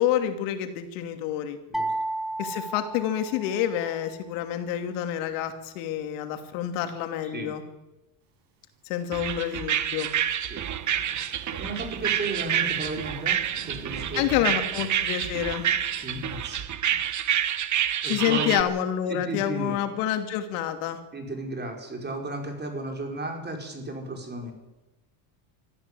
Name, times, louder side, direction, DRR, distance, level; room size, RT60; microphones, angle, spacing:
voice 1, 0.0-1.6 2.4-7.6 8.8-10.1 14.1-15.7 18.0-21.0, left 10 dB, 85° left, 7 dB, 2.8 m, -28 dB
sound 1, 1.7-3.9, right 2 dB, ahead, 1.5 m, -32 dB
Thunderstorm / Rain, 8.9-16.6, right 4 dB, 60° right, 7.3 m, -48 dB
sound 2, 9.1-18.6, right 10 dB, 40° right, 1.3 m, -28 dB
voice 2, 11.1-13.4 13.6-14.5 16.0-16.7 16.9-17.2 18.0-18.6 19.1-19.8 21.1-24.5, right 2 dB, 20° right, 2 dB, 5.6 m, -34 dB
23.5 x 14.0 x 8.5 m, 1.0 s
cardioid pair, 120°, 47 cm